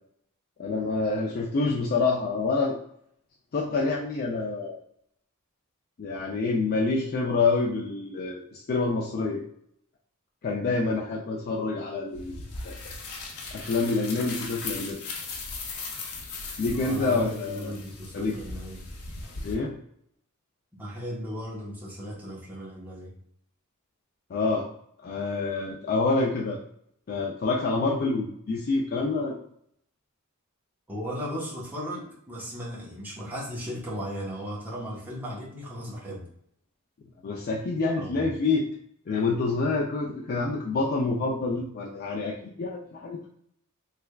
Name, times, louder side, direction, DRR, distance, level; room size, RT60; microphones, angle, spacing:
voice 1, 0.6-2.8 3.5-4.8 6.0-9.4 10.4-12.4 12.6-12.7 13.5-15.1 16.6-17.7 18.1-18.4 19.4-19.8 24.3-24.7 25.0-26.6 27.1-29.4 37.2-38.7 39.1-43.3, left 3 dB, 45° left, -2 dB, 0.4 m, -27 dB
sound 1, 12.1-19.5, left 3 dB, 75° left, 0.7 m, -38 dB
voice 2, 16.7-18.8 20.8-23.1 30.9-36.3 38.0-38.3, equal, 10° right, -6 dB, 1.0 m, -36 dB
3.3 x 3.3 x 2.2 m, 0.70 s
head